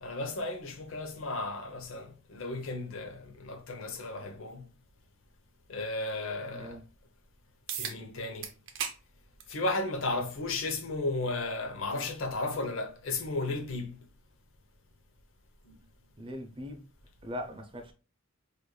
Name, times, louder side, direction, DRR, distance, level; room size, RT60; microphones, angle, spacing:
voice 1, 0.0-4.7 5.7-6.8 7.7-8.5 9.5-14.0 15.7-15.8, left 2 dB, 75° left, 0.7 m, -34 dB
voice 2, 6.5-6.8 16.2-16.8 17.2-17.9, left 1 dB, 25° right, 0.5 m, -40 dB
sound 1, 7.7-8.0 8.4-9.0 9.4-9.5 10.6-10.7 15.6-15.7, right 7 dB, 65° right, 0.6 m, -36 dB
4.6 x 2.5 x 2.2 m
head